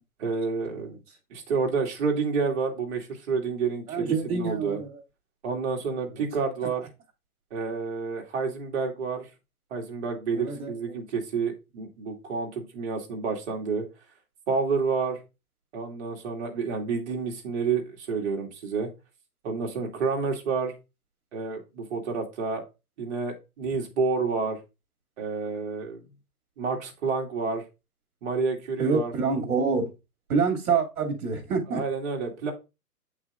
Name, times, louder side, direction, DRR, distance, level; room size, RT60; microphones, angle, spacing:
voice 1, 0.2-0.9 1.3-4.8 5.4-6.9 7.5-9.3 9.7-13.9 14.5-15.2 15.7-18.9 19.4-20.7 21.3-22.6 23.0-24.6 25.2-26.0 26.6-27.6 28.2-29.1 31.7-32.5, right 5 dB, 50° right, 2.4 m, -29 dB
voice 2, 3.9-5.0 10.3-10.7 28.8-29.9 30.3-31.8, right 5 dB, 70° right, 2.7 m, -26 dB
8.4 x 6.0 x 2.5 m
hypercardioid pair, 155°, 45 cm